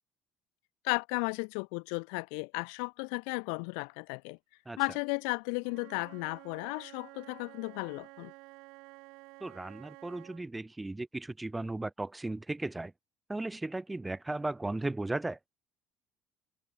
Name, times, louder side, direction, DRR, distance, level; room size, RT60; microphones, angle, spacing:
voice 1, 0.8-4.4 4.8-8.3, left 40 dB or more, 85° left, 0.7 m, -34 dB
Wind instrument woodwind instrument, 5.6-10.4, right 24 dB, 80° right, 4.1 m, -52 dB
voice 2, 9.4-12.9 13.3-15.4, right 2 dB, 10° right, 1.8 m, -36 dB
supercardioid pair, 100°, 0 cm